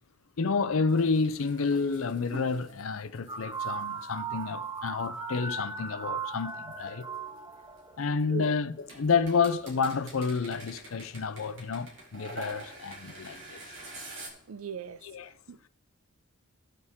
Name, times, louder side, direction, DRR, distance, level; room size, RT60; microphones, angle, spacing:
voice 1, 0.4-7.1 8.0-13.6 15.0-15.3, left 5 dB, 70° left, 0.6 m, -29 dB
sound 1, 0.9-5.5 6.2-8.4 8.8-14.3, right 2 dB, 60° right, 3.5 m, -47 dB
sound 2, 3.3-8.3, right 5 dB, 20° right, 1.0 m, -38 dB
voice 2, 14.5-15.0 15.5-15.7, right 6 dB, 85° right, 0.5 m, -38 dB
18.0 x 6.6 x 3.6 m
head